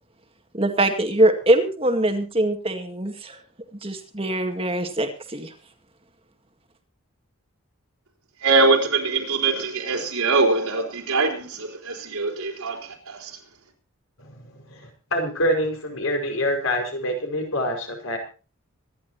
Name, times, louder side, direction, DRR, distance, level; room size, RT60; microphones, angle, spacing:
voice 1, 0.5-3.4 3.8-5.5, right 1 dB, 25° right, 2.1 m, -22 dB
voice 2, 8.4-13.4, right 3 dB, 85° right, 4.5 m, -23 dB
voice 3, 14.8-18.2, equal, 65° left, 5.4 m, -26 dB
25.5 x 11.5 x 3.0 m
head